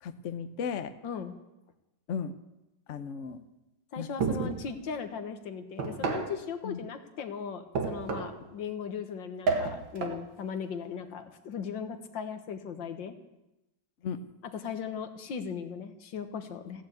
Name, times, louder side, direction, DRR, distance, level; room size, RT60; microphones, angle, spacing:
voice 1, 0.0-0.9 2.1-2.3 2.9-3.4 4.0-4.1 6.6-6.9 14.0-14.2, left 6 dB, 50° left, 10 dB, 0.9 m, -35 dB
voice 2, 1.0-1.3 3.9-13.1 14.5-16.8, left 6 dB, 75° left, 8 dB, 2.0 m, -38 dB
sound 1, 4.2-4.7 5.8-6.4 7.7-8.4 9.5-10.2, right 4 dB, 85° right, 2.5 m, -30 dB
15.5 x 10.5 x 8.4 m, 0.95 s
omnidirectional pair, 2.1 m